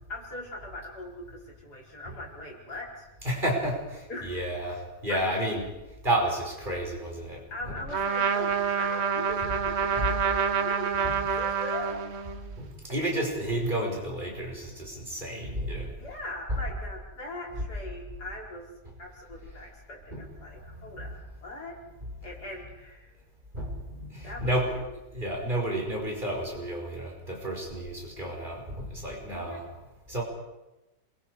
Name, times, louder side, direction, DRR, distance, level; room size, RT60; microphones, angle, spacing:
voice 1, 0.1-3.1 4.1-4.3 5.1-5.4 7.5-11.0 11.4-12.0 16.0-18.7 19.0-21.8 22.2-23.1 24.2-24.8 29.3-29.6, left 1 dB, 80° left, -2 dB, 5.2 m, -40 dB
voice 2, 3.2-5.7 6.0-7.8 9.4-9.5 10.0-10.1 11.0-11.4 12.6-15.9 16.5-16.6 18.8-18.9 20.1-20.3 20.6-21.1 23.5-24.8 25.1-29.7 30.1-30.2, right 1 dB, 30° right, -1 dB, 5.3 m, -31 dB
Trumpet, 7.9-12.5, right 7 dB, 45° right, 1.3 m, -27 dB
27.5 x 22.5 x 4.9 m, 0.99 s
omnidirectional pair, 1.7 m